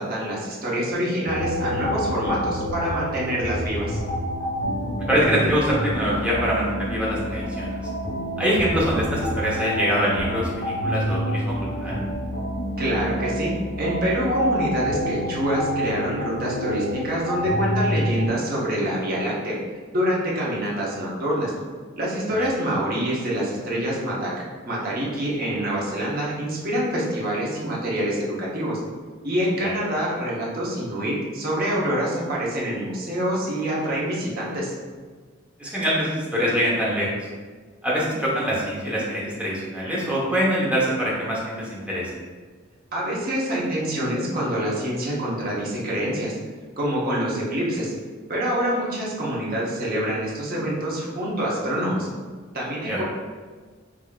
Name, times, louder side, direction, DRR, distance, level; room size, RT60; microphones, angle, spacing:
voice 1, 0.0-4.0 12.8-13.5 13.8-19.5 19.9-21.5 22.0-28.8 29.2-34.7 42.9-46.3 46.8-47.9 48.3-52.1 52.5-53.0, equal, 50° right, -5 dB, 0.9 m, -26 dB
sound 1, 1.3-18.3, equal, 80° left, 1.2 m, -28 dB
voice 2, 5.1-7.8 8.4-11.5 11.8-12.0 22.4-22.5 29.6-29.7 35.6-37.1 37.8-42.1 52.9-53.0, equal, 5° right, -6 dB, 0.9 m, -24 dB
4.9 x 2.7 x 2.4 m, 1.5 s
head